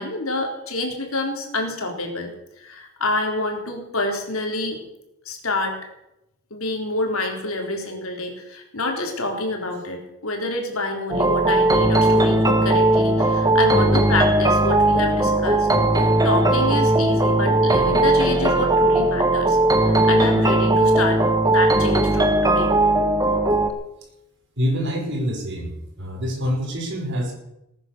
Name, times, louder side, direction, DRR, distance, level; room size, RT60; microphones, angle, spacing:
voice 1, 0.0-4.8 5.3-5.8 6.5-15.7 15.9-22.7, left 2 dB, 70° left, 3 dB, 3.7 m, -27 dB
sound 1, 11.1-23.7, right 2 dB, 15° right, 1.3 m, -18 dB
voice 2, 24.6-25.7 26.0-27.3, equal, 55° right, 1 dB, 5.5 m, -25 dB
19.5 x 9.8 x 6.8 m, 0.86 s
head